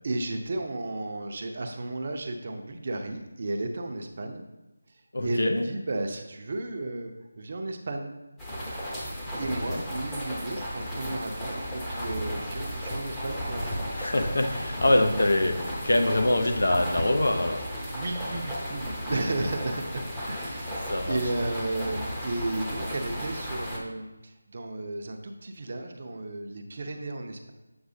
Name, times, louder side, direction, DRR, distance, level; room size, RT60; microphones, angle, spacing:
voice 1, 0.0-4.4 5.2-8.1 9.3-13.9 17.9-27.5, right 2 dB, 45° right, 4 dB, 0.7 m, -34 dB
voice 2, 5.1-5.7 9.5-9.8 14.0-17.7 20.8-21.2, left 1 dB, 70° left, 4 dB, 0.7 m, -25 dB
sound 1, 8.4-23.8, equal, 5° left, 0.8 m, -34 dB
7.8 x 4.7 x 2.7 m, 1.0 s
figure-of-eight pair, 165°, 0 cm